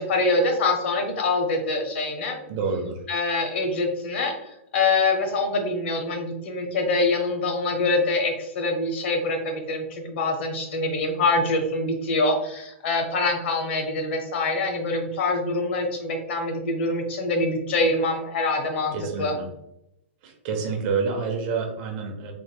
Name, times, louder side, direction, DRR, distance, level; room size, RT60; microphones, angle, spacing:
voice 1, 0.0-2.4 3.1-19.3, left 2 dB, 65° left, 3 dB, 1.0 m, -25 dB
voice 2, 2.5-3.0 18.9-19.5 20.2-22.3, right 5 dB, 40° right, 3 dB, 0.8 m, -28 dB
3.7 x 3.3 x 2.2 m, 0.83 s
hypercardioid pair, 155°, 7 cm